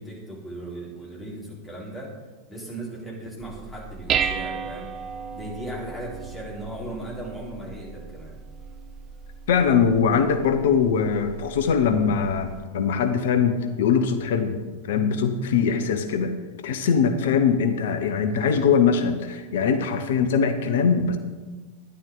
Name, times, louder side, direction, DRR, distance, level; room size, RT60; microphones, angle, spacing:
voice 1, 0.0-2.1 2.5-4.9 5.3-8.4, right 1 dB, 10° left, -5 dB, 4.0 m, -37 dB
Dishes pots and pans, 3.4-12.6, right 7 dB, 30° right, 0.5 m, -35 dB
voice 2, 9.5-14.6 14.8-16.3 16.6-21.2, left 6 dB, 55° left, 8 dB, 0.8 m, -22 dB
12.0 x 10.5 x 3.9 m, 1.3 s
figure-of-eight pair, 90°, 0 cm